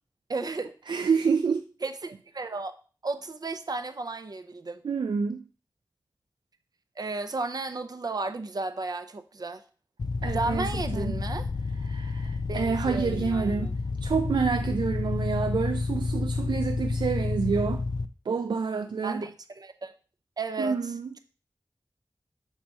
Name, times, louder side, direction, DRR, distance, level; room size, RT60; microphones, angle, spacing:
voice 1, 0.3-0.7 1.8-2.7 3.0-4.8 7.0-9.6 10.3-11.5 12.5-13.7 19.0-19.9 20.4-20.9, right 3 dB, 55° right, 0.7 m, -33 dB
voice 2, 0.9-1.6 4.8-5.4 10.2-11.2 11.8-13.7 14.0-17.8 18.3-19.2 20.6-21.1, right 5 dB, 85° right, 0.4 m, -28 dB
sound 1, 10.0-18.1, left 3 dB, 60° left, 0.5 m, -30 dB
6.3 x 4.0 x 4.7 m
wide cardioid pair, 70°, 8 cm